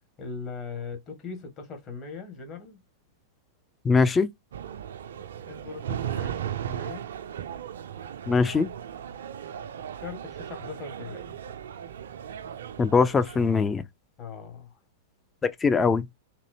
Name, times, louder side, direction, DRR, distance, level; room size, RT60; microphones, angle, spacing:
voice 1, 0.2-2.8 5.5-7.1 10.0-11.4 14.2-14.8, left 5 dB, 35° left, 1.7 m, -40 dB
voice 2, 3.8-4.3 8.3-8.7 12.8-13.8 15.4-16.0, left 5 dB, 15° left, 0.5 m, -22 dB
sound 1, 4.5-13.6, right 10 dB, 65° right, 0.4 m, -37 dB
4.0 x 2.7 x 2.8 m
figure-of-eight pair, 95°, 0 cm